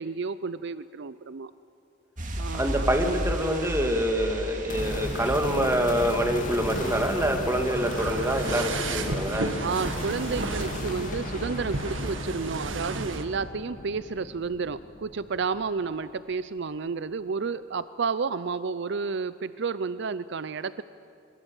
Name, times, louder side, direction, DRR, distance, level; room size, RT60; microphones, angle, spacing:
voice 1, 0.0-1.5 2.4-2.9 9.6-20.8, right 5 dB, 65° right, 15 dB, 0.5 m, -31 dB
sound 1, 2.2-8.7 8.9-9.1, equal, 45° right, 2.6 m, -35 dB
voice 2, 2.5-9.5, equal, 15° right, 4 dB, 2.3 m, -26 dB
sound 2, 4.7-16.0, left 1 dB, 45° left, 2.7 m, -37 dB
sound 3, 4.7-13.3, right 2 dB, 90° right, 1.9 m, -33 dB
22.5 x 22.0 x 8.9 m, 2.4 s
head